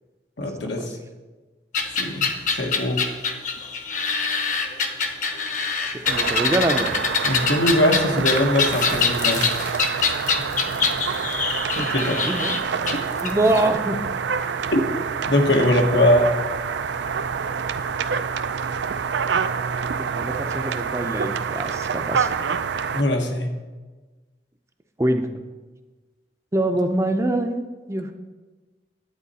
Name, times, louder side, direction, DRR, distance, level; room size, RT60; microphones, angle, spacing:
voice 1, 0.4-1.0 2.0-3.1 7.2-9.5 10.0-10.1 10.4-10.5 11.8-12.2 12.9-13.0 14.7-14.8 15.3-16.3 22.9-23.5, left 1 dB, 85° left, 3 dB, 1.3 m, -21 dB
sound 1, 1.7-13.6, left 5 dB, 45° left, 0.9 m, -24 dB
sound 2, 6.0-23.0, right 6 dB, 80° right, 0.4 m, -27 dB
voice 2, 6.1-6.9 11.8-12.5 13.2-14.0 15.7-16.0 20.1-22.3 25.0-25.3 26.5-27.6 27.9-28.1, right 1 dB, 15° right, 6 dB, 0.5 m, -24 dB
10.5 x 8.9 x 4.2 m, 1.3 s
head